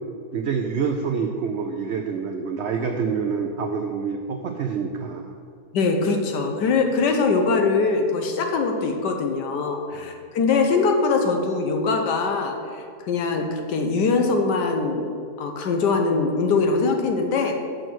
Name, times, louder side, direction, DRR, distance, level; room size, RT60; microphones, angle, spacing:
voice 1, 0.3-5.3 9.9-10.0, right 5 dB, 85° right, 4 dB, 0.6 m, -27 dB
voice 2, 5.7-15.1 15.4-17.6, left 4 dB, 85° left, 4 dB, 1.5 m, -22 dB
6.4 x 6.2 x 6.2 m, 2.3 s
omnidirectional pair, 1.8 m